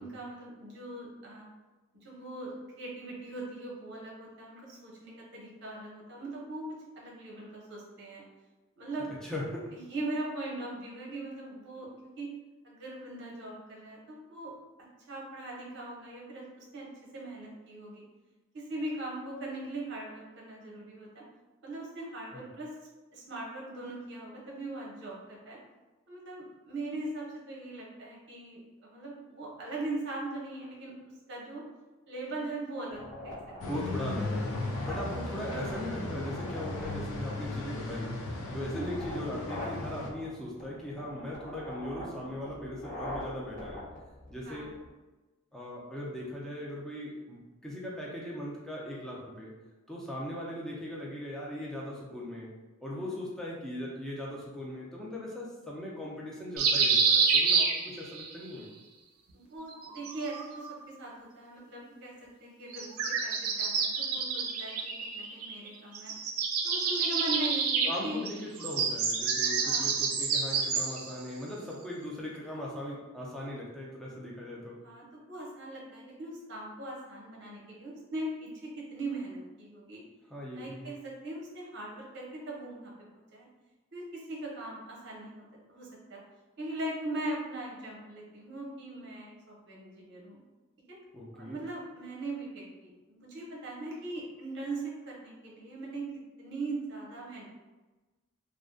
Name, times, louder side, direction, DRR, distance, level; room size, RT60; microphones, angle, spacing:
voice 1, 0.0-1.4 1.9-8.2 8.8-9.1 9.7-12.3 12.6-14.5 15.1-18.0 18.5-21.2 21.6-22.7 23.1-25.6 26.1-30.9 31.3-31.6 32.1-33.4 38.5-38.9 44.5-44.7 52.9-53.2 59.3-66.1 66.6-68.2 69.4-70.0 74.8-80.0 80.5-83.5 83.9-86.2 86.6-90.4 90.9-91.0 91.4-96.1 96.4-97.5, right 2 dB, 55° right, -3 dB, 0.7 m, -40 dB
voice 2, 9.2-9.7 22.3-22.4 33.7-34.5 34.8-43.8 44.3-44.7 45.5-49.5 49.9-52.5 52.8-58.7 67.8-74.8 80.3-80.9 91.1-91.6, left 1 dB, 5° left, -5 dB, 0.4 m, -39 dB
sound 1, 32.9-44.9, left 1 dB, 40° left, 0.8 m, -44 dB
sound 2, 33.6-40.1, left 2 dB, 85° left, 0.4 m, -36 dB
sound 3, 56.6-58.3 59.7-60.8 62.7-65.7 66.0-71.1, right 5 dB, 90° right, 0.4 m, -28 dB
2.4 x 2.1 x 2.5 m, 1.2 s
head